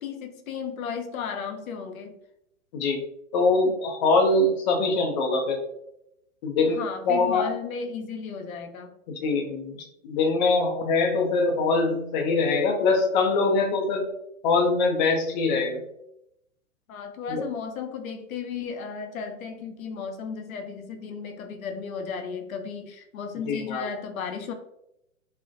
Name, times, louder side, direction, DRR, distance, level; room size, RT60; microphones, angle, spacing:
voice 1, 0.0-2.2 6.7-8.9 16.9-24.5, left 6 dB, 85° left, 6 dB, 0.5 m, -34 dB
voice 2, 2.7-3.0 3.3-5.6 6.4-6.8 7.1-7.5 9.2-14.1 14.4-15.8 17.3-17.4 23.5-23.9, left 3 dB, 35° left, 2 dB, 0.4 m, -23 dB
2.4 x 2.1 x 2.5 m, 0.79 s
hypercardioid pair, 125°, 40 cm